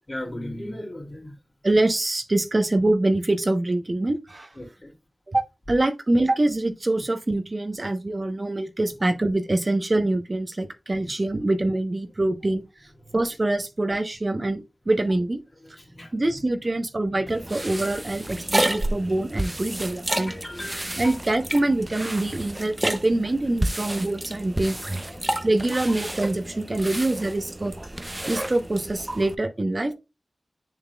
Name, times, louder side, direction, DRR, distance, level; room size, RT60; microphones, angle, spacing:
voice 1, 0.1-1.4 4.6-4.9 15.6-16.1 20.1-21.2 25.1-25.2 26.5-26.6 27.7-27.8 29.7-29.9, left 1 dB, 40° left, 2.7 m, -37 dB
voice 2, 1.6-4.5 5.3-12.6 13.1-15.4 16.1-20.3 21.0-24.8 25.4-27.7 28.3-29.9, right 2 dB, 45° right, 1.0 m, -24 dB
sound 1, 17.3-29.3, right 1 dB, 25° right, 0.7 m, -30 dB
7.1 x 6.4 x 2.4 m
cardioid pair, 40°, 0 cm